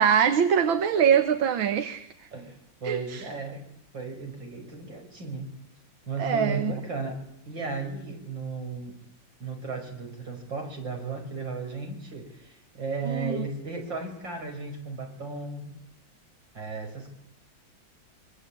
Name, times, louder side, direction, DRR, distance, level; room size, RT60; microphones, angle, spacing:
voice 1, 0.0-2.1 2.9-3.2 6.2-6.7 13.0-13.5, right 8 dB, 85° right, 2.1 m, -23 dB
voice 2, 2.3-3.7 3.9-5.6 6.0-9.0 9.4-15.7 16.5-17.1, right 3 dB, 70° right, 6.4 m, -35 dB
24.5 x 24.5 x 8.7 m
omnidirectional pair, 2.1 m